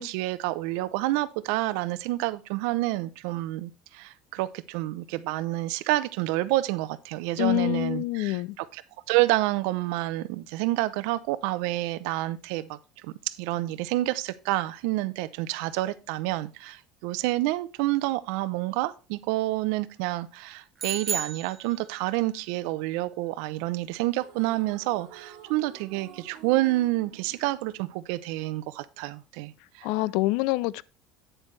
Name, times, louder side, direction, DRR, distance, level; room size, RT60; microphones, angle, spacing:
voice 1, 0.0-8.8 9.1-12.8 13.0-29.9, right 17 dB, 80° right, 0.6 m, -28 dB
voice 2, 7.4-8.6 29.8-30.8, left 20 dB, 70° left, 0.3 m, -26 dB
sound 1, 20.8-22.2, right 6 dB, 25° right, 0.3 m, -33 dB
sound 2, 24.1-28.5, right 9 dB, 60° right, 1.9 m, -50 dB
9.0 x 8.0 x 3.2 m
cardioid pair, 160°, 0 cm